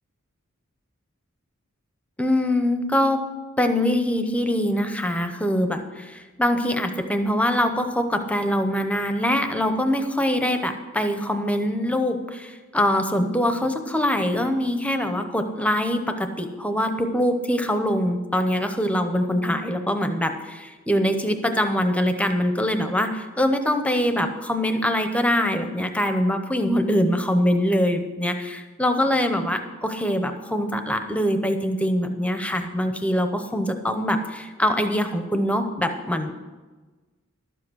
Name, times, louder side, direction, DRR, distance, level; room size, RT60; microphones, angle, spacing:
voice 1, 2.2-3.2 3.6-36.3, equal, 5° left, 7 dB, 0.7 m, -23 dB
12.0 x 7.6 x 6.3 m, 1.3 s
head